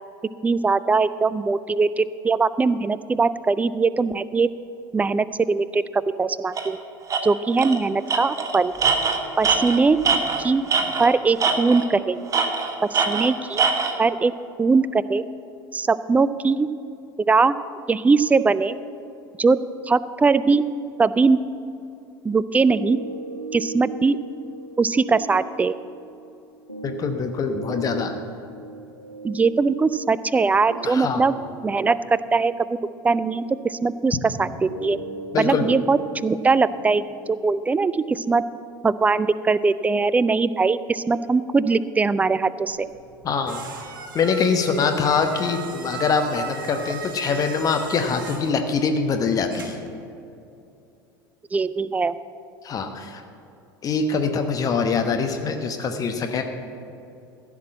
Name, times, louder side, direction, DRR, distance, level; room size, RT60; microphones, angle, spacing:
voice 1, 0.4-4.5 4.9-6.8 7.2-8.7 9.4-10.0 10.4-10.6 11.0-12.2 12.8-13.6 14.0-14.3 14.6-15.2 15.7-16.7 17.2-17.5 17.9-18.8 19.4-20.6 21.0-21.4 22.2-23.0 23.5-24.2 24.8-25.8 29.2-31.3 31.6-32.5 33.0-35.0 35.4-38.4 38.8-42.9 51.5-52.2, right 4 dB, 15° right, 16 dB, 0.4 m, -21 dB
Tools, 6.6-6.7 7.1-7.2 7.6-7.8 8.1-11.1 11.4-11.9 12.3-14.0, right 5 dB, 30° right, 1.2 m, -22 dB
sound 1, 22.7-38.7, right 3 dB, 90° right, 1.2 m, -40 dB
voice 2, 26.8-28.2 30.8-31.2 35.3-35.7 43.2-43.6 44.1-49.8 52.6-53.2 53.8-56.4, left 5 dB, 30° left, 5 dB, 0.9 m, -23 dB
sound 2, 42.7-50.0, right 5 dB, 65° right, 1.3 m, -38 dB
15.0 x 6.1 x 7.6 m, 2.6 s
figure-of-eight pair, 70°, 12 cm